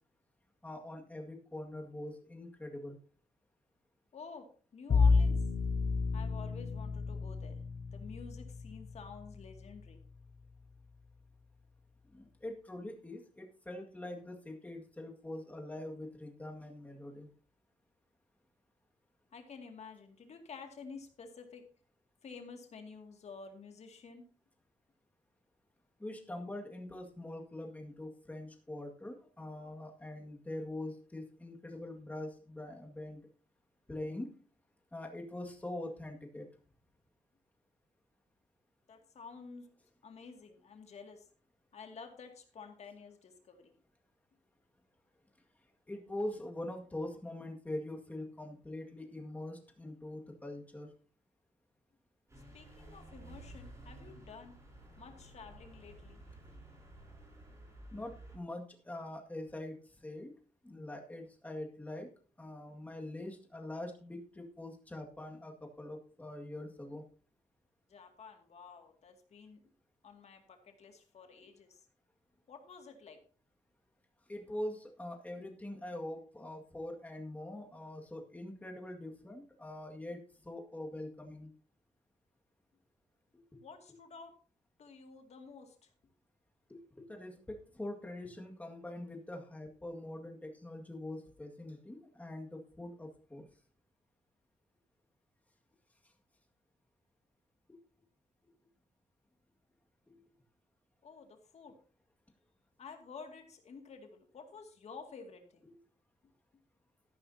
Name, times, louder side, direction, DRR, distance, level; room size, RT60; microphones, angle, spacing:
voice 1, 0.6-3.0 12.1-17.3 26.0-33.3 33.9-34.3 34.9-36.5 45.9-50.9 57.9-60.3 60.6-62.1 62.4-67.0 74.3-81.5 83.5-83.6 86.7-93.5, left 1 dB, 10° left, 1 dB, 2.0 m, -43 dB
voice 2, 4.1-4.5 4.7-5.4 6.1-7.6 7.9-10.0 19.3-21.6 22.2-24.2 38.9-39.7 40.0-41.3 41.7-43.7 52.5-54.5 55.0-56.2 67.9-69.6 70.0-71.8 72.5-73.2 83.6-84.3 84.8-85.9 101.0-101.8 102.8-105.7, left 5 dB, 55° left, 5 dB, 2.3 m, -51 dB
Bowed string instrument, 4.9-10.0, left 4 dB, 40° left, 0.5 m, -31 dB
sound 1, 52.3-58.4, right 1 dB, 20° right, 5.7 m, -53 dB
13.5 x 11.5 x 2.8 m, 0.40 s
wide cardioid pair, 175°, 13 cm